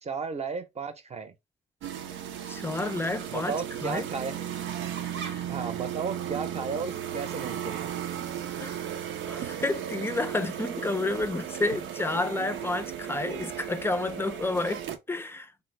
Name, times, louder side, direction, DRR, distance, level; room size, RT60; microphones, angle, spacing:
voice 1, 0.0-1.3 3.3-4.4 5.5-7.9, right 5 dB, 35° right, 0.8 m, -34 dB
sound 1, 1.8-15.0, right 10 dB, 80° right, 0.6 m, -35 dB
voice 2, 2.5-4.1 5.0-5.4 8.6-8.8 9.3-15.5, left 2 dB, 10° left, 0.5 m, -30 dB
3.2 x 2.2 x 3.3 m
cardioid pair, 75°, 19 cm